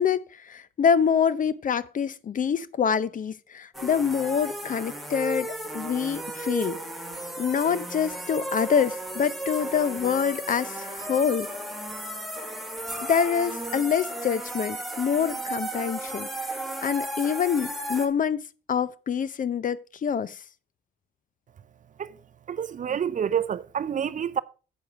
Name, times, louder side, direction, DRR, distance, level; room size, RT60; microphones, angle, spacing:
voice 1, 0.0-6.8 7.4-11.5 13.1-20.4, left 7 dB, 40° left, 0.6 m, -26 dB
sound 1, 3.7-18.1, right 1 dB, ahead, 1.8 m, -34 dB
voice 2, 22.5-24.4, right 8 dB, 40° right, 0.5 m, -28 dB
8.0 x 7.0 x 4.6 m
cardioid pair, 90°, 20 cm